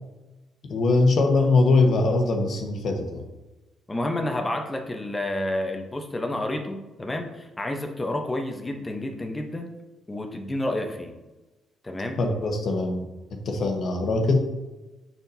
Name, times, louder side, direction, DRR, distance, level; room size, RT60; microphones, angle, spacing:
voice 1, 0.7-3.2 12.2-13.0 13.4-14.4, left 3 dB, 60° left, 3 dB, 1.2 m, -22 dB
voice 2, 3.9-9.7 10.1-11.1 11.8-12.2, left 1 dB, 20° left, 4 dB, 0.9 m, -30 dB
6.7 x 5.9 x 2.8 m, 1.1 s
cardioid pair, 90°, 0 cm